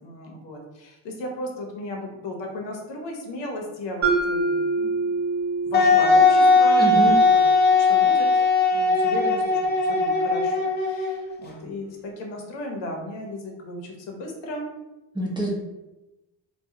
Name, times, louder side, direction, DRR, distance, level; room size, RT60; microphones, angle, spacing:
voice 1, 0.0-5.1 5.6-7.4 7.9-14.7, left 1 dB, 65° left, 1 dB, 0.8 m, -35 dB
Mallet percussion, 4.0-8.1, right 3 dB, 35° right, 0.9 m, -27 dB
Wind instrument woodwind instrument, 5.7-11.3, left 3 dB, 25° left, 0.4 m, -19 dB
voice 2, 6.8-7.2 15.1-15.6, right 1 dB, 10° right, -4 dB, 0.7 m, -25 dB
2.2 x 2.2 x 2.8 m, 1.0 s
supercardioid pair, 65°, 47 cm